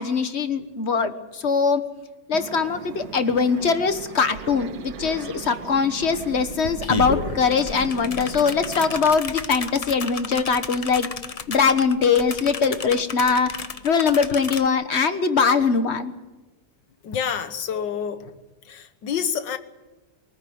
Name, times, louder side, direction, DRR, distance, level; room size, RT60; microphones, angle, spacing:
voice 1, 0.0-1.8 2.3-11.1 11.5-13.5 13.8-16.1, left 5 dB, 40° left, 10 dB, 1.5 m, -22 dB
sound 1, 2.3-9.2, right 6 dB, 85° right, 1.7 m, -37 dB
sound 2, 5.7-5.8 6.1-14.7, left 5 dB, 65° left, 0.3 m, -33 dB
voice 2, 17.0-18.3 18.7-19.6, left 7 dB, 80° left, 10 dB, 1.9 m, -28 dB
23.5 x 14.5 x 9.4 m, 1.1 s
omnidirectional pair, 1.9 m